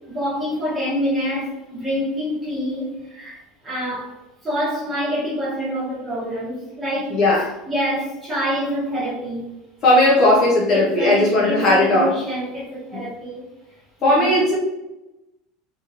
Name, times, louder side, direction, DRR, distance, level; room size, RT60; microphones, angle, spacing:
voice 1, 0.1-4.1 4.4-7.2 7.7-9.4 10.0-10.2 10.7-13.4 14.0-14.4, equal, 10° right, -8 dB, 1.1 m, -26 dB
voice 2, 7.1-7.5 9.8-12.1 12.9-13.0 14.0-14.6, left 1 dB, 30° left, -4 dB, 0.6 m, -17 dB
3.0 x 2.6 x 2.4 m, 0.98 s
cardioid pair, 175°, 0 cm